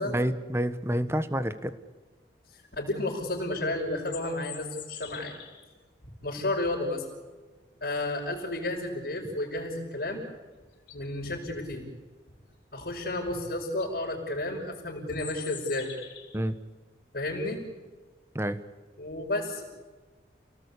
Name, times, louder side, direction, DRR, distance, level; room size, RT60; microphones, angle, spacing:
voice 1, 0.0-1.7 16.3-16.5 18.3-18.6, equal, 15° right, 11 dB, 1.3 m, -28 dB
voice 2, 2.5-5.3 6.2-7.0 7.8-10.2 10.9-11.9 12.7-15.9 17.1-17.6 19.0-19.6, left 2 dB, 60° left, -7 dB, 5.6 m, -32 dB
sound 1, 3.9-5.7 10.2-10.3 10.7-11.2 13.2-13.3 13.6-13.9 15.1-16.5, left 10 dB, 80° left, 4.5 m, -44 dB
29.5 x 18.5 x 8.5 m, 1.3 s
head